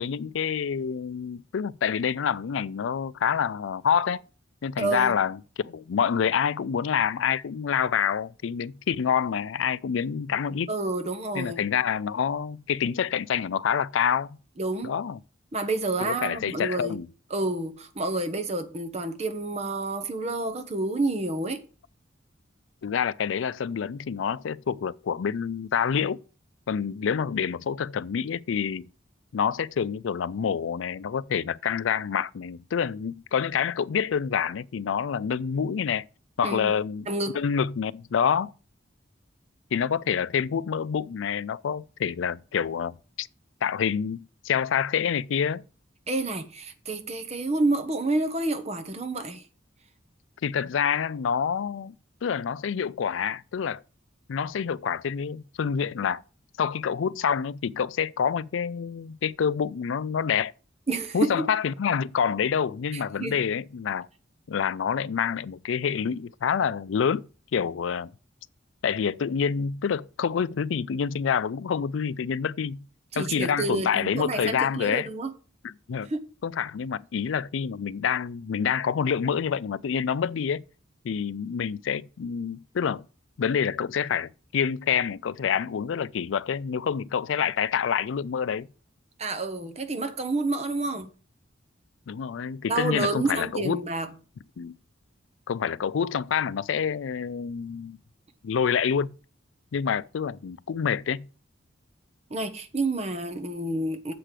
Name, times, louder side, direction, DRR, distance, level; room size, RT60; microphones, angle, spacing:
voice 1, 0.0-4.2 4.6-10.7 11.3-14.4 14.8-15.2 16.0-17.1 22.8-26.2 26.7-28.9 29.3-36.0 36.4-37.1 37.3-38.5 39.7-43.3 43.6-45.6 50.4-51.9 52.2-53.8 54.3-56.2 56.6-60.5 61.1-64.1 64.5-67.2 67.5-68.1 68.8-72.9 73.1-75.1 75.6-76.1 76.4-80.6 81.0-83.0 83.4-88.7 92.1-93.9 94.6-94.8 95.5-98.0 98.4-99.2 99.7-101.3, left 7 dB, 90° left, 0.4 m, -27 dB
voice 2, 4.8-5.1 10.7-11.6 14.6-14.9 15.5-17.0 17.3-21.6 36.4-36.7 37.1-37.4 46.1-49.4 60.9-61.5 63.2-63.4 73.1-75.3 76.1-76.2 89.2-91.1 92.7-94.1 102.3-104.1, right 2 dB, 35° right, 1.1 m, -29 dB
7.6 x 5.0 x 7.4 m
head